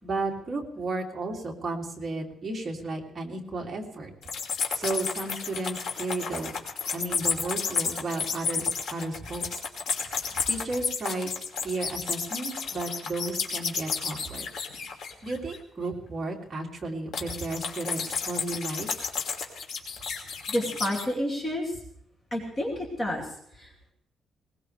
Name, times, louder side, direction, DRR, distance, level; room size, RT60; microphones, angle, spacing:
voice 1, 0.0-4.1 4.7-6.5 6.9-9.6 10.5-11.3 11.6-14.4 15.2-18.9, right 2 dB, 25° right, -1 dB, 2.7 m, -33 dB
sound 1, 4.2-15.6 17.1-21.1, left 5 dB, 70° left, 2.8 m, -31 dB
voice 2, 20.5-21.8 22.3-23.9, left 1 dB, 25° left, -2 dB, 2.6 m, -30 dB
21.0 x 19.5 x 3.4 m, 0.69 s
cardioid pair, 175°, 0 cm